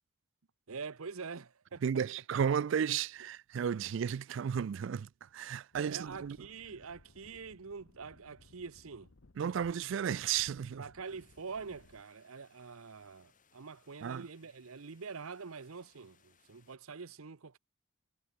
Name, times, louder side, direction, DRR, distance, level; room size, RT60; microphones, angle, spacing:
voice 1, 0.7-1.8 5.8-9.1 10.7-17.6, right 5 dB, 85° right, 0.8 m, -45 dB
voice 2, 1.8-6.4 9.4-10.8 14.0-14.3, right 8 dB, 65° right, 0.3 m, -33 dB
sound 1, 5.7-12.0, left 2 dB, 70° left, 1.0 m, -62 dB
sound 2, 11.0-16.8, left 6 dB, 40° left, 7.5 m, -70 dB
head